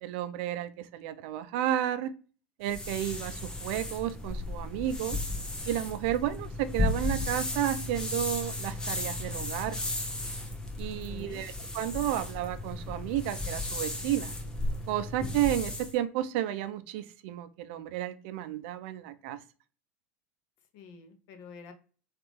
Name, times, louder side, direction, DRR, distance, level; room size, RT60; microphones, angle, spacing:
voice 1, 0.0-2.1 2.6-5.2 5.7-9.8 10.8-14.3 14.9-19.4, right 12 dB, 65° right, 11 dB, 0.4 m, -32 dB
sound 1, 2.6-15.9, left 2 dB, 10° left, 0.8 m, -35 dB
voice 2, 10.9-11.4 20.7-21.7, left 5 dB, 60° left, 7 dB, 0.7 m, -48 dB
3.4 x 2.4 x 3.2 m, 0.38 s
hypercardioid pair, 85°, 7 cm